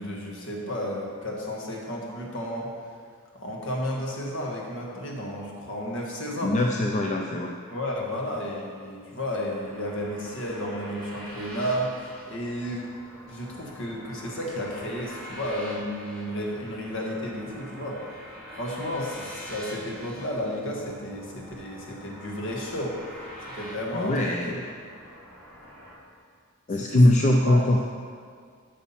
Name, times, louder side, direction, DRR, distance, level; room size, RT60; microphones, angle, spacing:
voice 1, 0.0-2.7 3.3-6.5 7.7-12.8 13.3-18.0 18.5-23.0 23.5-24.4 26.7-27.6, equal, 60° left, -1 dB, 1.6 m, -32 dB
voice 2, 6.4-7.5 23.9-24.6 26.7-27.8, left 1 dB, 30° left, 1 dB, 0.4 m, -21 dB
sound 1, 9.6-25.9, equal, 5° left, 2.2 m, -44 dB
8.3 x 6.1 x 5.8 m, 2.1 s
head